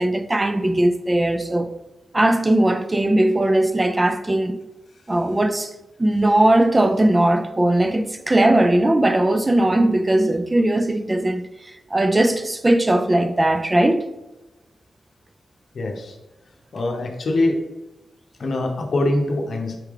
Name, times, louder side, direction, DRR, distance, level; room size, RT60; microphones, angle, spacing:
voice 1, 0.0-1.7 2.1-4.6 5.1-5.7 6.0-11.5 11.9-14.0, right 1 dB, 20° right, 0.3 m, -19 dB
voice 2, 15.7-16.2 16.7-17.6 18.4-19.8, left 2 dB, 60° left, 0.8 m, -23 dB
4.5 x 3.3 x 3.5 m
wide cardioid pair, 115°, 0 cm